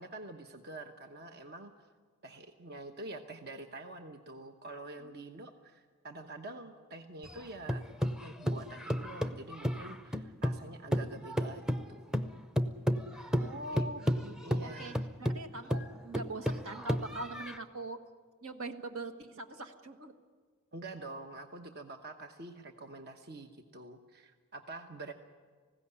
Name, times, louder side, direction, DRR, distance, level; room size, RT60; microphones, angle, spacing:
voice 1, 0.0-1.9 2.2-7.8 8.2-12.1 13.7-13.9 14.4-15.0 20.7-25.1, right 2 dB, 50° right, 5 dB, 1.0 m, -46 dB
sound 1, 7.2-10.6 10.9-17.6, equal, 5° right, 0.6 m, -33 dB
voice 2, 13.4-14.9 15.2-18.0 18.4-20.1, right 2 dB, 75° right, 6 dB, 1.5 m, -42 dB
19.5 x 16.0 x 9.8 m, 1.5 s
head